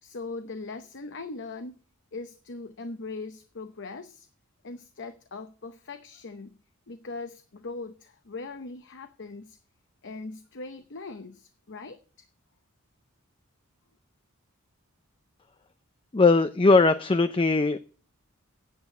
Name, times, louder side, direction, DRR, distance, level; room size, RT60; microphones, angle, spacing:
voice 1, 0.0-1.8 2.1-4.3 4.6-6.6 6.9-9.6 10.0-12.3, left 3 dB, 55° left, 9 dB, 0.8 m, -40 dB
voice 2, 16.1-17.8, left 3 dB, 25° left, 11 dB, 0.5 m, -20 dB
9.3 x 7.8 x 8.3 m, 0.40 s
head